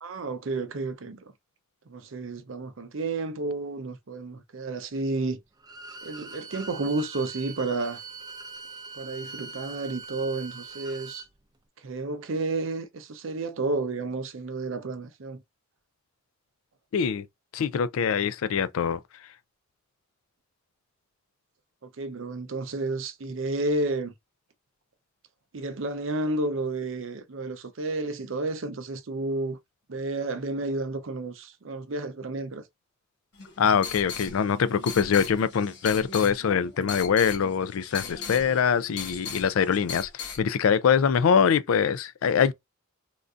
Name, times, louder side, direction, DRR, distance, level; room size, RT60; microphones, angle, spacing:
voice 1, 0.0-1.3 1.9-5.4 6.0-8.0 8.9-11.2 11.8-15.4 21.8-24.1 25.5-29.6 29.9-32.6, right 2 dB, 65° right, 0.6 m, -31 dB
Bowed string instrument, 5.6-11.3, right 4 dB, 20° right, 0.3 m, -42 dB
voice 2, 16.9-17.2 17.5-19.0 33.6-42.5, left 7 dB, 80° left, 0.4 m, -23 dB
sound 1, 33.3-40.4, left 6 dB, 55° left, 1.3 m, -39 dB
3.6 x 2.5 x 2.4 m
head